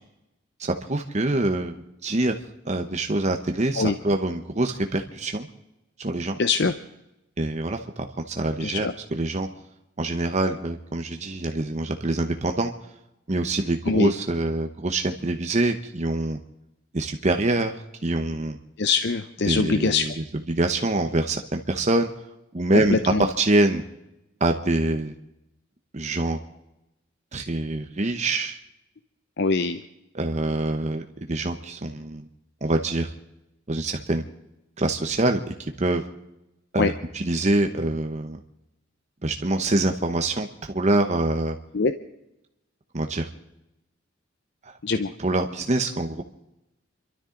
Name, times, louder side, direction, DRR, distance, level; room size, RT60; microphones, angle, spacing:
voice 1, 0.6-2.3 2.7-5.5 6.0-6.4 7.4-9.5 10.0-12.7 13.3-16.4 16.9-18.6 19.5-22.1 22.5-23.8 24.4-25.1 25.9-26.4 27.3-28.6 30.1-32.3 32.6-33.1 33.7-34.2 34.8-36.0 36.7-38.4 39.2-41.6 42.9-43.3 44.6-44.8 45.2-46.2, right 2 dB, 35° right, 5 dB, 0.9 m, -25 dB
voice 2, 6.4-6.7 8.6-8.9 13.9-14.1 18.8-20.0 22.7-23.3 29.4-29.8 36.8-36.9 41.7-41.9 44.8-45.1, left 4 dB, 60° left, 9 dB, 0.7 m, -23 dB
29.0 x 12.5 x 3.9 m, 0.91 s
head